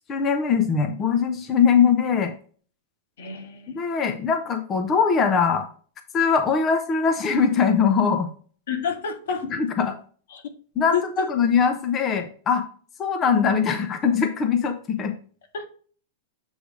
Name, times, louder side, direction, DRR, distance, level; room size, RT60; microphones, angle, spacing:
voice 1, 0.0-2.3 3.7-5.7 6.1-8.3 9.4-9.9 10.8-12.6 13.0-15.1, left 6 dB, 20° left, 6 dB, 0.7 m, -21 dB
voice 2, 3.2-3.8 8.7-9.4 10.3-10.4 10.9-11.3 13.7-13.9 15.5-15.7, left 6 dB, 80° left, 3 dB, 2.1 m, -29 dB
7.8 x 3.3 x 5.1 m, 0.42 s
supercardioid pair, 155°, 0 cm